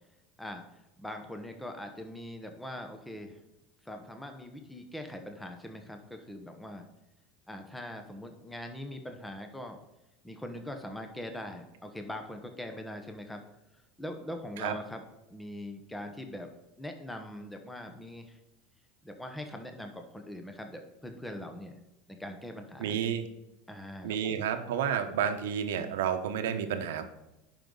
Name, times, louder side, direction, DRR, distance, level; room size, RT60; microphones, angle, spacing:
voice 1, 0.4-3.4 3.8-6.8 7.5-9.8 10.2-13.4 14.0-15.0 15.3-16.5 16.8-18.4 19.0-21.7 22.1-23.0 23.7-24.5, left 1 dB, 5° left, 5 dB, 1.0 m, -42 dB
voice 2, 22.8-23.3 24.0-27.0, right 8 dB, 85° right, 7 dB, 0.9 m, -30 dB
10.5 x 5.3 x 3.9 m, 0.93 s
supercardioid pair, 115°, 0 cm